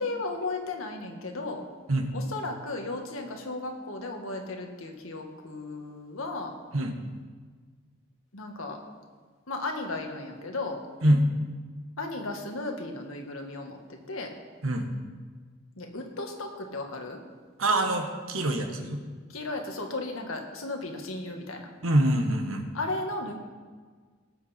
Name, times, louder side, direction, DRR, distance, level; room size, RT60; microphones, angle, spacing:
voice 1, 0.0-1.7 2.1-6.5 8.3-8.8 9.5-10.8 12.0-13.8 14.1-14.3 15.8-17.2 19.3-21.7 22.7-23.3, left 2 dB, 85° left, 3 dB, 1.7 m, -35 dB
voice 2, 17.6-19.0 21.8-22.7, right 1 dB, 85° right, 5 dB, 1.4 m, -25 dB
18.0 x 7.9 x 4.4 m, 1.5 s
head